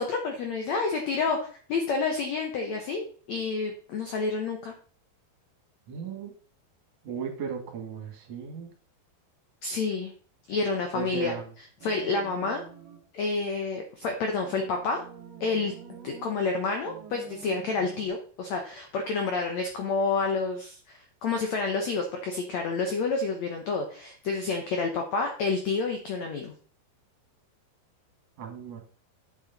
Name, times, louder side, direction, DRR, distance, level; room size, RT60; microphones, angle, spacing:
voice 1, 0.0-4.7 9.6-10.1 10.5-11.3 11.8-12.6 13.1-15.0 15.4-15.7 16.0-26.5, left 4 dB, 85° left, 4 dB, 1.5 m, -29 dB
voice 2, 5.9-6.3 7.0-8.7 10.9-11.5 28.4-28.8, right 7 dB, 50° right, 3 dB, 2.7 m, -36 dB
sound 1, 11.8-13.1 14.4-16.4 16.8-18.1, right 7 dB, 75° right, 1.5 m, -47 dB
9.6 x 6.8 x 4.1 m, 0.43 s
omnidirectional pair, 4.7 m